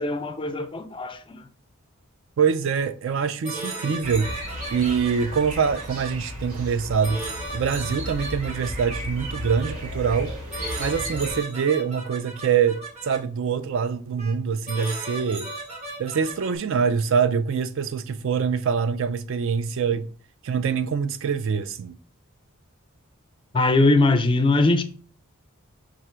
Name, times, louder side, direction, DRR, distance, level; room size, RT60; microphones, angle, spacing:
voice 1, 0.0-1.4 23.5-24.8, left 2 dB, 20° left, 0.4 m, -21 dB
voice 2, 2.4-4.3 4.7-7.2 7.5-10.3 10.8-15.5 16.0-20.1 20.4-21.9, right 6 dB, 60° right, 0.3 m, -24 dB
sound 1, 3.4-6.1 7.0-9.7 10.5-13.2 14.2-14.3 14.7-16.6, right 2 dB, 30° right, 1.1 m, -36 dB
sound 2, 4.0-11.4, equal, 80° right, 1.4 m, -34 dB
4.8 x 2.4 x 4.4 m
head